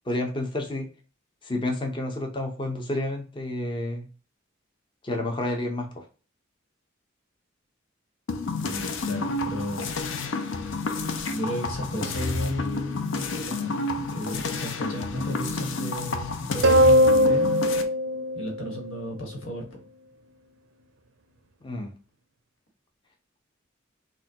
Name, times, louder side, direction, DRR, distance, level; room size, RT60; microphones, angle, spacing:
voice 1, 0.1-0.9 1.4-4.0 5.0-6.0 21.6-21.9, left 1 dB, 25° left, 3 dB, 0.6 m, -30 dB
sound 1, 8.3-17.8, left 3 dB, 70° left, 0.6 m, -30 dB
voice 2, 8.5-9.9 11.3-17.5 18.3-19.9, equal, 90° left, 1 dB, 1.5 m, -34 dB
sound 2, 16.6-19.2, equal, 70° right, 0.5 m, -20 dB
5.9 x 2.2 x 2.8 m, 0.36 s
head